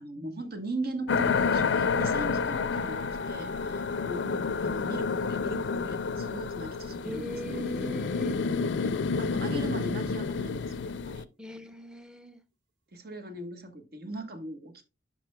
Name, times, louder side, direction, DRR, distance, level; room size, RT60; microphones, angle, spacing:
voice 1, 0.0-4.3 4.6-7.7 8.8-10.7 11.1-11.3 12.9-14.8, right 2 dB, 60° right, 1.3 m, -39 dB
sound 1, 1.1-11.2, left 5 dB, 80° left, 0.4 m, -29 dB
sound 2, 2.7-7.4, equal, 85° right, 0.8 m, -46 dB
voice 2, 7.0-8.4 11.4-12.4, left 1 dB, 5° right, 0.7 m, -39 dB
11.0 x 5.0 x 2.2 m
head